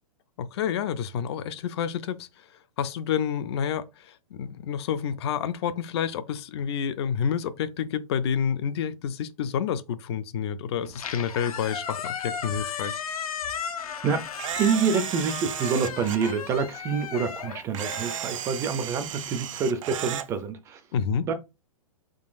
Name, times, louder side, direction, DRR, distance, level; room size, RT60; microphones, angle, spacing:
voice 1, 0.4-2.4 2.8-13.0 20.9-21.3, left 8 dB, 50° left, 0.5 m, -29 dB
Squeak, 10.8-19.1, left 7 dB, 85° left, 0.9 m, -35 dB
Camera, 14.4-16.3 17.7-20.3, right 10 dB, 65° right, 0.5 m, -34 dB
voice 2, 14.6-20.8 21.3-21.4, right 6 dB, 15° right, 0.4 m, -27 dB
4.4 x 3.8 x 2.5 m
hypercardioid pair, 145°, 18 cm